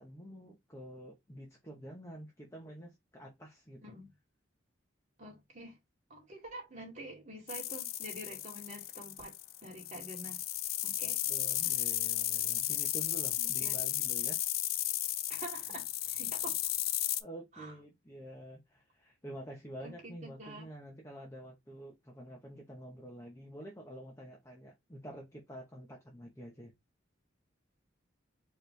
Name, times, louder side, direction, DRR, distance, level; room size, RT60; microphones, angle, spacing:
voice 1, 0.0-4.0 11.3-14.4 17.2-26.7, right 1 dB, 15° left, 1.0 m, -48 dB
voice 2, 5.2-5.8 6.1-9.3 9.6-10.4 10.8-11.2 11.6-11.8 13.4-13.8 15.3-16.7 17.5-17.7 19.8-20.7, right 1 dB, 40° right, 2.3 m, -47 dB
sound 1, 7.5-17.2, left 13 dB, 50° left, 0.4 m, -34 dB
4.8 x 3.3 x 3.3 m
head